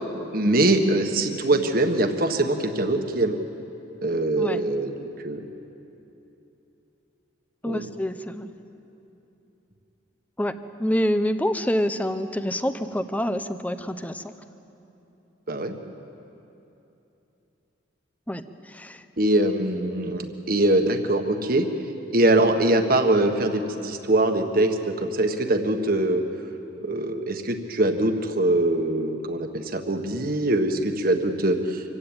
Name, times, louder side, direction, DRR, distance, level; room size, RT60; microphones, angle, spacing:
voice 1, 0.3-3.4 4.0-5.4 7.6-7.9 15.5-15.7 19.2-21.7 22.1-26.2 26.8-31.8, right 1 dB, 50° right, 6 dB, 1.5 m, -23 dB
voice 2, 7.6-8.5 10.4-10.5 10.8-14.3 18.3-19.0, equal, 10° left, 11 dB, 0.7 m, -27 dB
26.0 x 16.0 x 8.8 m, 3.0 s
head